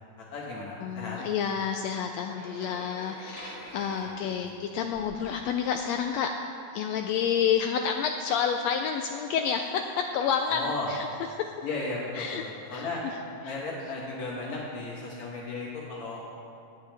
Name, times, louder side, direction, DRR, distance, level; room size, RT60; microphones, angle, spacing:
voice 1, 0.2-1.2 4.4-4.6 10.5-10.9 11.6-13.0 13.4-16.2, left 3 dB, 65° left, -3 dB, 2.4 m, -35 dB
voice 2, 0.8-6.3 6.7-11.1 11.4-11.5 12.1-12.4 12.7-12.9, left 7 dB, 85° left, 4 dB, 1.5 m, -29 dB
sound 1, 2.2-5.3, equal, 25° left, 2.3 m, -46 dB
16.5 x 10.0 x 3.4 m, 2.5 s
omnidirectional pair, 3.6 m